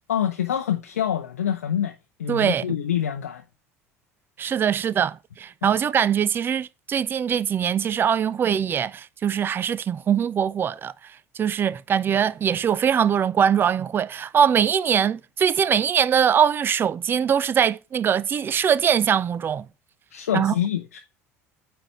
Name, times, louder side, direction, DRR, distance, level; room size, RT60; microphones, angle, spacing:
voice 1, 0.1-3.4 5.6-5.8 20.1-21.0, left 9 dB, 75° left, 0.5 m, -26 dB
voice 2, 2.3-2.6 4.4-10.9 11.4-19.7 20.3-20.5, right 8 dB, 25° right, 0.4 m, -22 dB
8.9 x 3.4 x 5.3 m
figure-of-eight pair, 65°, 8 cm